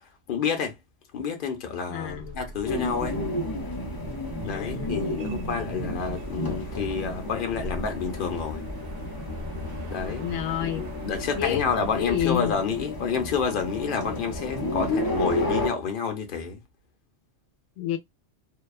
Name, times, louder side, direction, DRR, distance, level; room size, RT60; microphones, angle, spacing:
voice 1, 0.3-0.7 1.1-3.2 4.4-8.6 9.9-10.2 10.6-16.6, left 6 dB, 50° left, 0.8 m, -29 dB
voice 2, 1.9-2.4 4.4-5.1 10.0-10.8 11.3-11.6 11.9-12.6 17.8-18.0, left 10 dB, 90° left, 0.9 m, -29 dB
sound 1, 2.0-12.1, equal, 75° right, 0.9 m, -41 dB
sound 2, 2.7-15.7, left 1 dB, 25° left, 0.6 m, -32 dB
2.8 x 2.2 x 2.3 m
omnidirectional pair, 1.2 m